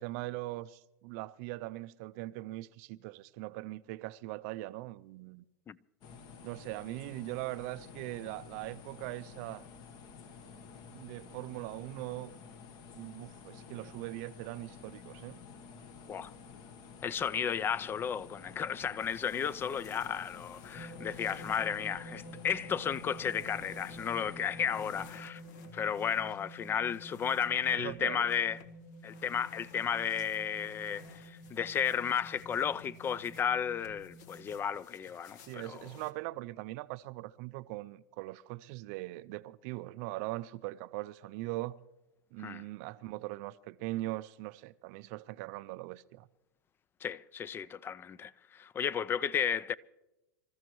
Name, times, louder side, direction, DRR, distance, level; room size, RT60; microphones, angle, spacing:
voice 1, 0.0-5.4 6.4-9.7 10.9-12.3 12.9-15.4 26.2-26.3 27.7-28.3 35.5-41.8 42.3-46.3, right 19 dB, 50° right, 0.5 m, -41 dB
sound 1, 6.0-25.1, left 5 dB, 45° left, 1.2 m, -51 dB
voice 2, 17.0-25.4 25.7-28.6 29.0-35.8 42.4-42.6 47.0-49.7, left 8 dB, 20° left, 0.4 m, -33 dB
sound 2, 19.0-36.1, left 5 dB, 60° left, 1.4 m, -57 dB
sound 3, 20.7-34.6, equal, 80° left, 4.9 m, -50 dB
26.5 x 14.0 x 3.1 m
hypercardioid pair, 120°, 10 cm